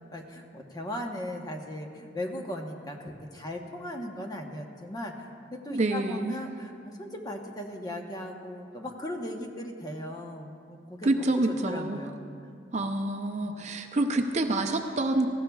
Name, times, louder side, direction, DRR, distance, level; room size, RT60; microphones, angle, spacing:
voice 1, 0.1-12.3 13.2-13.5, left 1 dB, 20° left, 2 dB, 1.0 m, -38 dB
voice 2, 5.7-6.3 11.0-12.0 12.7-15.3, right 2 dB, 40° right, 4 dB, 0.6 m, -27 dB
19.0 x 15.5 x 2.3 m, 2.4 s
head